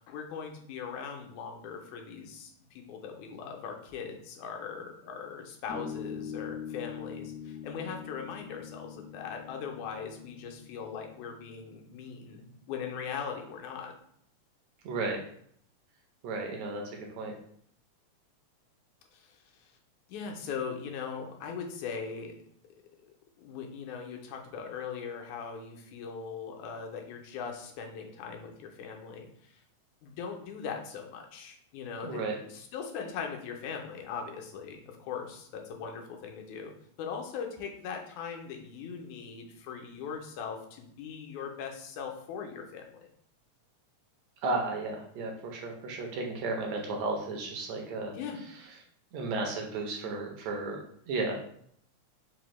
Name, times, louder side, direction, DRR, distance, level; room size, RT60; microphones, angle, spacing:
voice 1, 0.1-13.9 19.1-19.4 20.1-22.3 23.4-29.5 30.0-36.7 37.0-43.1 48.1-48.4, left 6 dB, 85° left, 2 dB, 2.0 m, -40 dB
sound 1, 5.7-12.6, left 7 dB, 60° left, 0.5 m, -43 dB
voice 2, 14.9-15.2 16.2-16.8 17.2-17.3 32.0-32.4 44.4-48.1 49.1-50.8 51.1-51.4, right 3 dB, 75° right, 1 dB, 1.8 m, -33 dB
5.1 x 2.1 x 3.0 m, 0.66 s
omnidirectional pair, 3.4 m